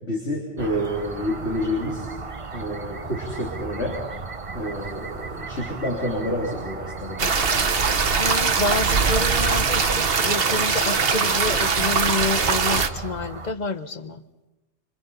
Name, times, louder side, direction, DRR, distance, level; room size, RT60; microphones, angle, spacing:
voice 1, 0.0-2.1 2.5-4.0 4.5-7.5, equal, 75° left, -2 dB, 4.0 m, -28 dB
sound 1, 0.6-13.5, right 4 dB, 30° right, 0.9 m, -36 dB
sound 2, 7.2-12.9, right 5 dB, 60° right, 1.4 m, -21 dB
voice 2, 8.2-14.2, left 3 dB, 40° left, 11 dB, 1.1 m, -28 dB
26.0 x 25.0 x 5.7 m, 1.1 s
omnidirectional pair, 1.1 m